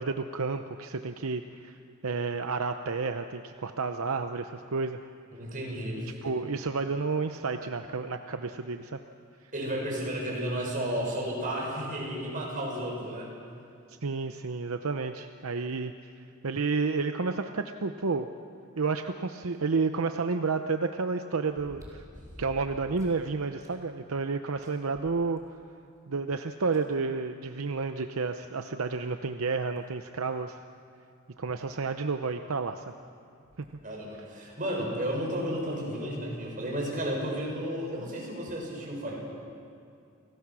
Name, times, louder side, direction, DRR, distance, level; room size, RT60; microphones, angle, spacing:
voice 1, 0.0-1.8 2.0-5.0 6.2-9.0 14.0-15.9 16.4-18.3 18.8-22.0 22.4-25.4 26.1-30.6 31.4-32.8, right 4 dB, 80° right, 7 dB, 0.7 m, -31 dB
voice 2, 5.3-6.3 9.5-13.3 33.8-39.2, equal, 40° right, -2 dB, 6.7 m, -33 dB
sound 1, 19.5-19.6 21.5-23.2 23.6-23.7 24.2-24.3 24.6-25.7 26.7-26.8 28.3-28.4 28.9-29.0 29.8-30.0 31.3-31.4 31.6-31.7 33.4-33.7 34.4-34.5, equal, 15° right, 4.6 m, -49 dB
29.0 x 19.0 x 6.2 m, 2.5 s
head